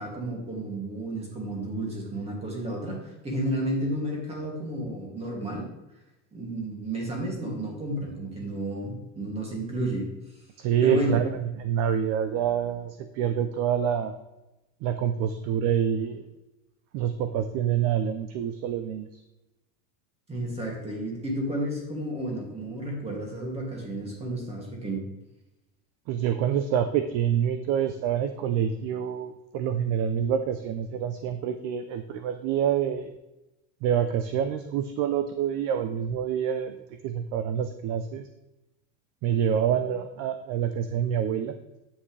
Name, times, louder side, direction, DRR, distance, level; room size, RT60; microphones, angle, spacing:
voice 1, 0.0-5.7 6.3-10.1 10.8-11.2 20.3-25.0, right 1 dB, 15° right, -1 dB, 2.4 m, -32 dB
voice 2, 10.6-14.2 14.8-16.2 16.9-19.2 26.1-33.1 33.8-38.3 39.2-41.5, right 9 dB, 40° right, 10 dB, 0.6 m, -27 dB
9.8 x 8.6 x 3.3 m, 0.99 s
cardioid pair, 165°, 39 cm